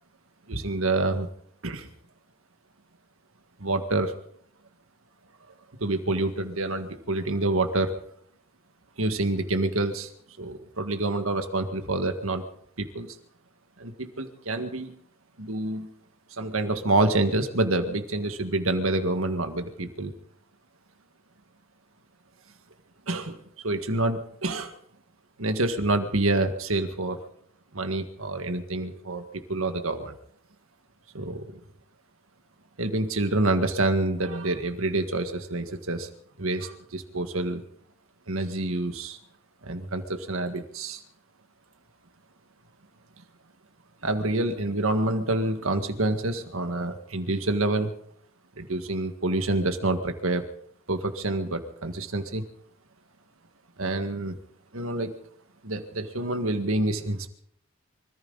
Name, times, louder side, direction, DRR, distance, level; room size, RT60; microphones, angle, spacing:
voice 1, 0.5-1.3 1.6-1.9 3.6-4.1 5.8-7.9 9.0-10.1 10.4-12.4 12.8-13.2 13.8-14.9 15.4-15.9 16.3-20.1 23.1-24.7 25.4-27.2 27.7-30.1 31.1-31.4 32.8-36.1 36.4-37.6 38.3-39.2 39.6-41.0 44.0-47.9 48.6-50.4 50.9-52.4 53.8-54.4 54.7-55.1 55.6-57.3, right 2 dB, 80° right, 7 dB, 1.8 m, -27 dB
24.5 x 14.5 x 4.0 m, 0.66 s
head